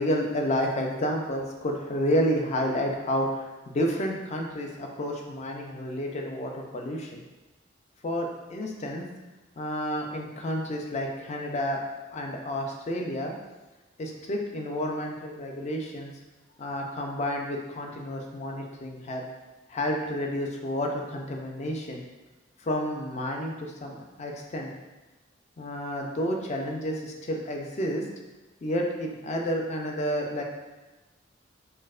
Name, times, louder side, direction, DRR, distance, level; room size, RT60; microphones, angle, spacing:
voice 1, 0.0-7.2 8.0-9.0 9.6-11.8 12.1-13.3 14.0-16.1 16.6-19.2 19.7-22.0 22.6-24.7 25.6-28.0 28.6-30.4, equal, 35° left, 1 dB, 0.4 m, -30 dB
4.3 x 2.0 x 2.4 m, 1.1 s
head